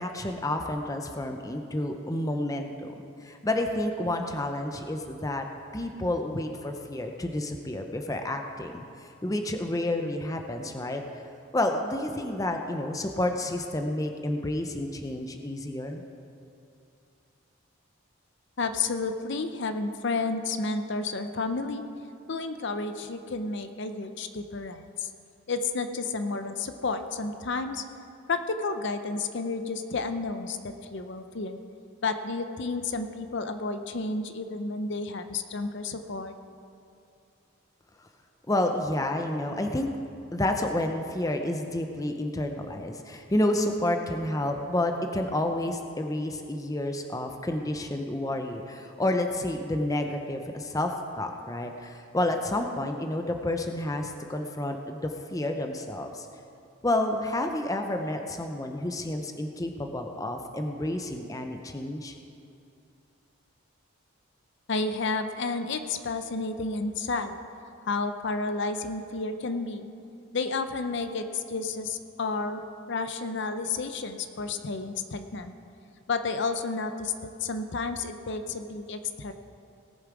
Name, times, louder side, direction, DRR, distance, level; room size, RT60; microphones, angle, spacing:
voice 1, 0.0-2.9 3.2-5.5 5.7-11.0 11.5-16.0 38.5-39.9 40.3-56.3 56.8-62.2, left 1 dB, 15° left, 4 dB, 0.6 m, -30 dB
voice 2, 18.6-21.8 22.3-25.1 25.5-27.8 28.3-31.6 32.0-36.3 64.7-67.3 67.9-69.9 70.3-72.6 72.9-75.5 76.1-77.1 77.4-79.3, left 3 dB, 55° left, 8 dB, 0.6 m, -31 dB
18.5 x 7.0 x 4.8 m, 2.6 s
head